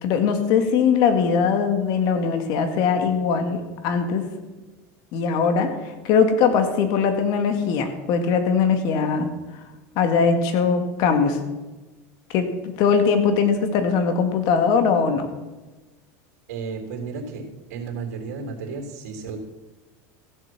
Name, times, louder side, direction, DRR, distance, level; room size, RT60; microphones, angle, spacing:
voice 1, 0.0-4.3 5.1-9.3 10.0-11.4 12.3-12.5 12.8-15.3, left 6 dB, 55° left, 7 dB, 2.0 m, -21 dB
voice 2, 16.5-17.4 17.7-19.4, right 5 dB, 80° right, 2 dB, 3.2 m, -33 dB
15.5 x 8.0 x 6.1 m, 1.2 s
supercardioid pair, 120°, 9 cm